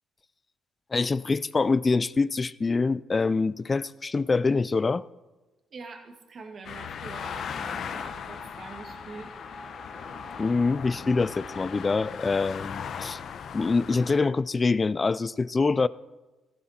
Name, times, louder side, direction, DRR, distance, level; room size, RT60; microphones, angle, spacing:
voice 1, 0.9-5.0 10.4-13.2 13.5-15.9, left 4 dB, 30° left, 0.4 m, -25 dB
voice 2, 5.7-9.3, right 4 dB, 50° right, 2.1 m, -44 dB
sound 1, 6.6-14.2, left 7 dB, 60° left, 0.9 m, -38 dB
sound 2, 7.9-12.2, right 1 dB, 5° right, 1.3 m, -48 dB
16.5 x 15.0 x 4.4 m
cardioid pair, 90°, 0 cm